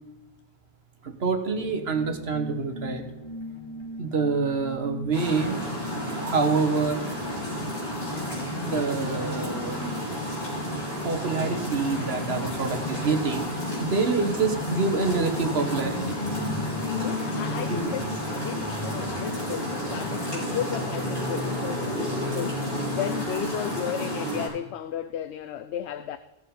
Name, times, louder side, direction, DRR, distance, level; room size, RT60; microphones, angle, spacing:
voice 1, 1.0-3.0 4.0-5.7 6.0-7.0 8.6-10.1 11.0-13.5 13.8-16.2 17.7-17.9, right 4 dB, 70° right, 1.5 m, -26 dB
sound 1, 1.5-19.0, left 2 dB, 25° left, 1.6 m, -39 dB
sound 2, 5.1-24.5, equal, 65° left, 4.8 m, -31 dB
voice 2, 17.0-26.2, left 10 dB, 80° left, 0.8 m, -34 dB
17.5 x 7.0 x 3.8 m
omnidirectional pair, 1.1 m